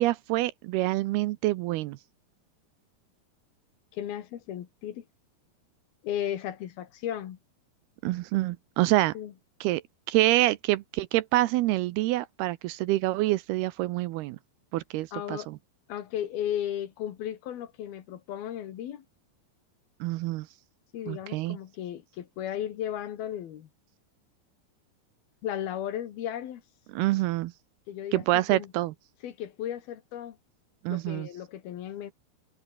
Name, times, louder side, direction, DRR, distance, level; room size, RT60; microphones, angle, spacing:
voice 1, 0.0-2.0 8.0-9.1 9.6-9.8 10.1-14.4 14.7-15.6 20.0-20.5 21.1-21.6 26.9-27.5 28.1-28.9 30.8-31.3, right 17 dB, 80° right, 2.5 m, -26 dB
voice 2, 3.9-5.1 6.0-7.4 9.2-9.3 15.1-15.5 15.9-19.1 20.9-23.7 25.4-26.6 27.9-28.3 28.5-28.7 29.2-30.4 30.9-32.1, left 10 dB, 65° left, 3.4 m, -35 dB
omnidirectional pair, 4.9 m